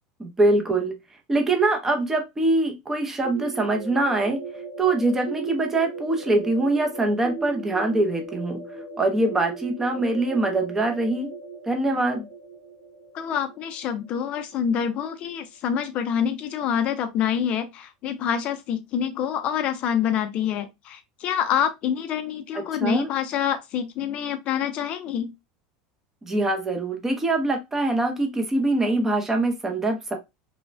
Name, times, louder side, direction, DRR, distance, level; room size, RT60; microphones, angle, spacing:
voice 1, 0.2-1.0 1.3-4.4 4.8-8.6 9.0-11.3 11.7-12.3 22.5-23.1 26.2-30.2, right 2 dB, 10° right, 0.5 m, -23 dB
sound 1, 3.2-15.0, right 4 dB, 60° right, 1.1 m, -37 dB
voice 2, 13.1-25.3, left 8 dB, 40° left, 0.4 m, -26 dB
3.1 x 2.1 x 2.4 m
supercardioid pair, 140°, 3 cm